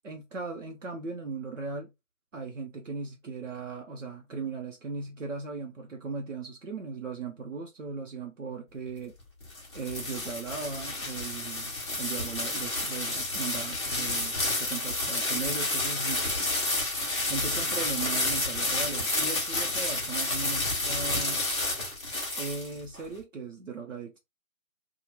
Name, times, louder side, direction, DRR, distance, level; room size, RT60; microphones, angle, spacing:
voice 1, 0.0-1.9 2.3-9.1 9.7-16.2 17.3-21.5 22.4-24.2, right 4 dB, 65° right, 0.8 m, -38 dB
sound 1, 9.2-23.0, left 2 dB, 20° left, 0.8 m, -30 dB
2.8 x 2.3 x 3.2 m
figure-of-eight pair, 150°, 42 cm